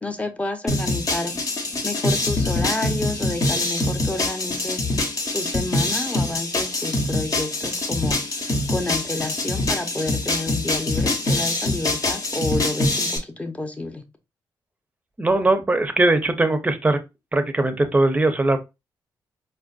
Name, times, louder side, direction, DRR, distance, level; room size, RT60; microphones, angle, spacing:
voice 1, 0.0-1.3 1.8-4.8 5.3-8.2 8.7-14.0, left 2 dB, 15° left, 0.7 m, -29 dB
sound 1, 0.7-13.2, left 2 dB, 45° left, 0.9 m, -24 dB
voice 2, 15.2-17.0 17.3-18.6, right 2 dB, 20° right, 0.6 m, -20 dB
4.3 x 2.5 x 2.4 m
cardioid pair, 85°, 8 cm